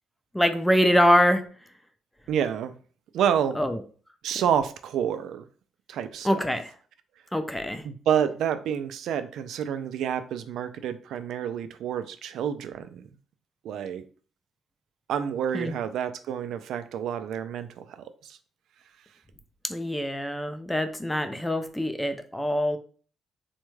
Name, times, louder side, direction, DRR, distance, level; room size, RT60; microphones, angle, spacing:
voice 1, 0.3-1.4 3.6-3.8 6.2-6.6 7.3-7.8 15.5-15.7 19.7-22.8, equal, 5° left, 8 dB, 0.4 m, -24 dB
voice 2, 2.3-2.7 3.1-3.6 4.2-5.4 5.9-6.3 7.8-13.0 13.6-14.0 15.1-18.4, right 8 dB, 80° right, 10 dB, 0.3 m, -28 dB
3.4 x 2.2 x 3.1 m, 0.41 s
cardioid pair, 90°, 0 cm